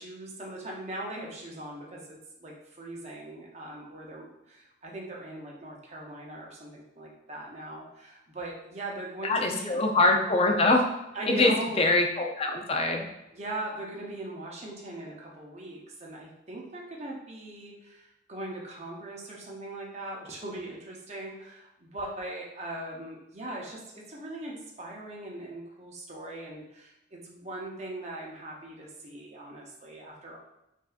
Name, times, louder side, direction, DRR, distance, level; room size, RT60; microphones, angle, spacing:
voice 1, 0.0-9.8 11.1-11.8 13.3-30.4, right 1 dB, 35° right, -2 dB, 0.7 m, -40 dB
voice 2, 9.2-10.9 11.3-13.0, left 2 dB, 30° left, 2 dB, 0.4 m, -24 dB
5.5 x 2.6 x 2.4 m, 0.89 s
head